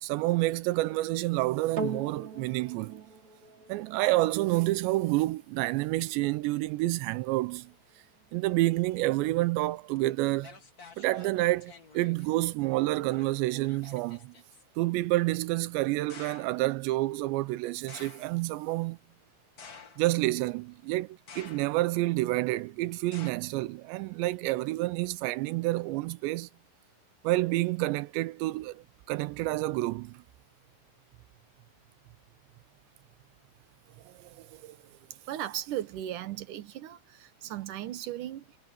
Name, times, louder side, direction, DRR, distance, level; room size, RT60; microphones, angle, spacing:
voice 1, 0.0-3.0 3.7-7.7 8.3-10.6 11.0-14.3 14.8-19.0 20.0-26.5 27.2-30.2 34.1-34.8, right 19 dB, 85° right, 2.9 m, -29 dB
sound 1, 1.8-10.3 11.0-11.1, right 3 dB, 35° right, 3.2 m, -43 dB
sound 2, 10.0-10.1 10.4-12.3 13.1-14.6 16.1-16.7 17.9-18.4 19.6-20.3 21.3-21.9 23.1-23.3, left 5 dB, 90° left, 0.8 m, -50 dB
voice 2, 35.3-38.6, right 12 dB, 70° right, 2.1 m, -37 dB
omnidirectional pair, 5.0 m